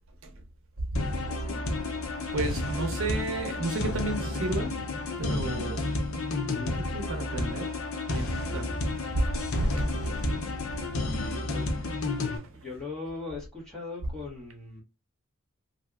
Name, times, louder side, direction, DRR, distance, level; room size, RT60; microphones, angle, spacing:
sound 1, 1.0-12.4, left 2 dB, 75° left, 0.6 m, -31 dB
voice 1, 1.2-1.7 10.9-11.7 12.3-14.8, left 3 dB, 5° left, 1.5 m, -40 dB
voice 2, 2.0-4.8 5.2-5.9 6.4-7.7 8.1-8.8 9.1-10.1 10.7-10.8 12.3-12.5, right 2 dB, 70° right, 0.7 m, -32 dB
3.3 x 2.6 x 2.3 m
head